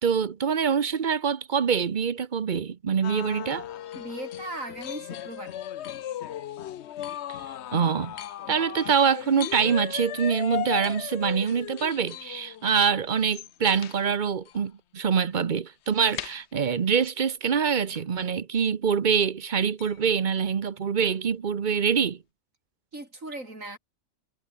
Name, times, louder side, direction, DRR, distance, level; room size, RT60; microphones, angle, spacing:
voice 1, 0.0-3.6 7.7-8.1 8.5-22.2, right 6 dB, 40° right, 0.9 m, -25 dB
sound 1, 3.0-14.0 14.5-14.6 15.9-16.4 17.9-18.0 19.8-20.0 21.0-21.1 21.9-22.0, left 11 dB, 60° left, 0.9 m, -37 dB
voice 2, 3.9-5.6 22.9-23.8, right 2 dB, 80° right, 6.8 m, -38 dB
omnidirectional pair, 1.4 m